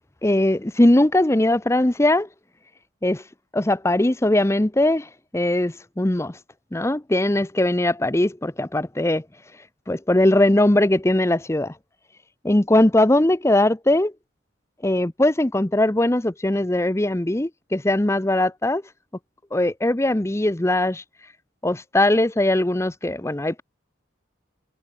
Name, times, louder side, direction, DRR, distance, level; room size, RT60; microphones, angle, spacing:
voice 1, 0.2-2.3 3.0-3.2 3.5-6.4 6.7-9.2 9.9-11.7 12.4-14.1 14.8-18.8 19.5-21.0 21.6-23.6, left 1 dB, 15° left, 0.6 m, -20 dB
head